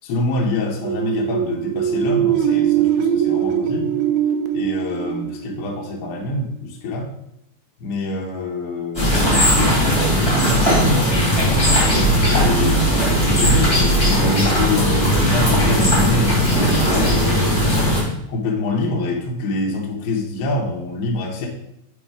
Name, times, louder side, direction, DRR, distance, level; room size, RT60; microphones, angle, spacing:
voice 1, 0.0-3.9 4.5-7.1 7.8-12.9 13.2-17.4 18.3-21.5, left 2 dB, 80° left, -1 dB, 2.3 m, -25 dB
sound 1, 0.7-6.3, right 10 dB, 85° right, 2.7 m, -21 dB
sound 2, 8.9-18.0, equal, 20° left, 0.9 m, -18 dB
sound 3, 11.3-17.8, right 3 dB, 65° right, 3.5 m, -25 dB
7.8 x 3.2 x 4.8 m, 0.78 s
omnidirectional pair, 5.9 m